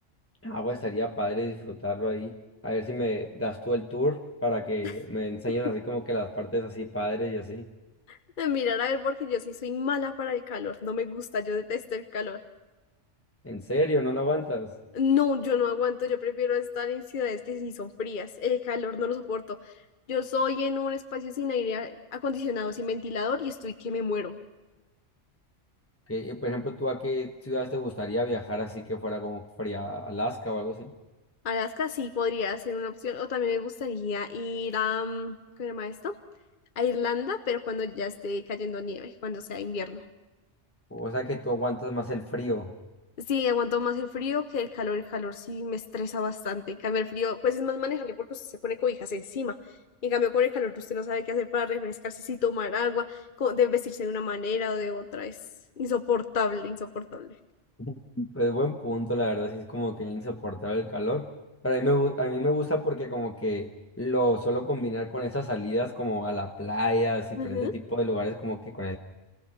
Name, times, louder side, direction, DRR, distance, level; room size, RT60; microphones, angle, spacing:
voice 1, 0.4-2.3 2.6-7.7 13.4-14.7 26.1-30.9 40.9-42.7 57.8-61.3 61.6-63.7 64.0-69.0, equal, 15° left, 3 dB, 0.9 m, -29 dB
voice 2, 8.1-12.4 14.9-19.7 20.1-24.4 31.4-36.1 36.8-40.0 43.2-49.6 50.0-55.4 55.8-57.3 67.4-67.7, left 6 dB, 45° left, 8 dB, 1.0 m, -29 dB
27.5 x 20.0 x 5.9 m, 1.1 s
omnidirectional pair, 1.2 m